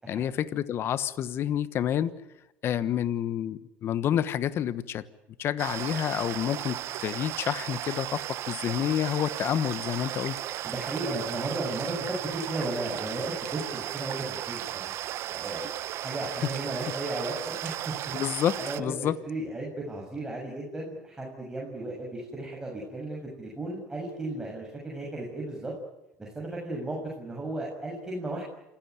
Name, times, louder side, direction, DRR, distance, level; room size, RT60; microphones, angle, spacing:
voice 1, 0.1-2.1 2.6-5.0 5.4-10.4 18.1-19.2, left 10 dB, 45° left, 15 dB, 1.3 m, -29 dB
sound 1, 5.6-18.8, right 13 dB, 55° right, 1.0 m, -35 dB
voice 2, 10.6-14.9 15.3-18.2 18.6-25.7 26.2-28.4, right 2 dB, 10° right, -3 dB, 7.1 m, -35 dB
28.0 x 16.5 x 9.5 m, 0.92 s
supercardioid pair, 115°, 5 cm